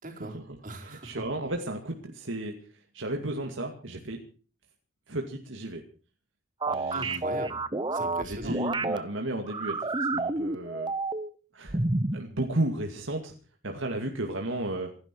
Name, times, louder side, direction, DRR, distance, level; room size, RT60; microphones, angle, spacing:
voice 1, 0.0-1.1 6.9-7.6 7.9-8.6, right 1 dB, 40° right, 2 dB, 4.7 m, -40 dB
voice 2, 0.8-4.2 5.1-5.8 6.7-7.2 8.2-10.9 11.5-11.8 12.1-13.3 13.6-14.9, right 1 dB, 65° right, 3 dB, 2.4 m, -33 dB
sound 1, 6.6-9.0 9.5-11.3 11.7-12.2, right 2 dB, 20° right, 0.9 m, -29 dB
27.0 x 11.0 x 4.7 m, 0.40 s
head